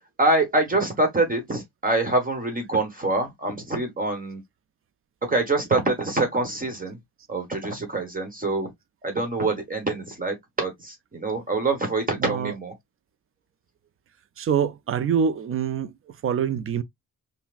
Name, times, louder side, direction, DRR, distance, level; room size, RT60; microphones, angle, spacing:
voice 1, 0.2-4.4 5.2-7.0 7.3-8.7 9.0-12.7, right 2 dB, 25° right, 1.2 m, -25 dB
voice 2, 12.2-12.6 14.4-15.9 16.2-16.8, right 7 dB, 40° right, 0.4 m, -25 dB
5.7 x 2.1 x 2.4 m
wide cardioid pair, 135°, 34 cm